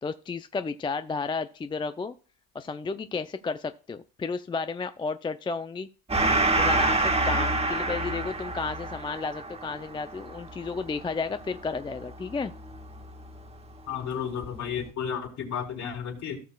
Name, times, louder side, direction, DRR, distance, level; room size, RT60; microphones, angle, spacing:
voice 1, 0.0-2.1 2.5-5.9 6.6-12.5, left 4 dB, 15° left, 10 dB, 0.4 m, -32 dB
Gong, 6.1-13.1, right 2 dB, 15° right, 1.7 m, -27 dB
voice 2, 13.9-16.4, left 7 dB, 50° left, 1 dB, 3.8 m, -32 dB
16.5 x 6.3 x 2.3 m, 0.38 s
supercardioid pair, 105°, 36 cm